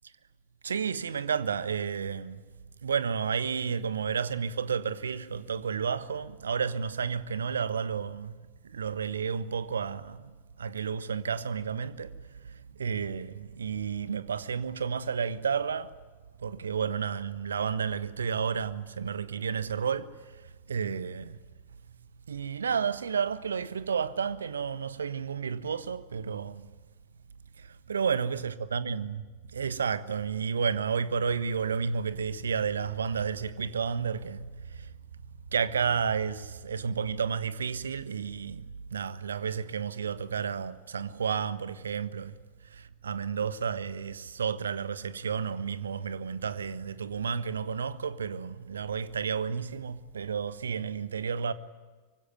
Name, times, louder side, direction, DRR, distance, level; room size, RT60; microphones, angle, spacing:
voice 1, 0.6-2.4 2.8-8.4 8.6-15.9 16.4-21.4 22.3-26.7 27.6-29.2 29.5-34.9 35.2-42.4 42.6-51.5, right 6 dB, 70° right, 1.3 m, -31 dB
25.0 x 24.5 x 9.3 m
figure-of-eight pair, 90°, 0 cm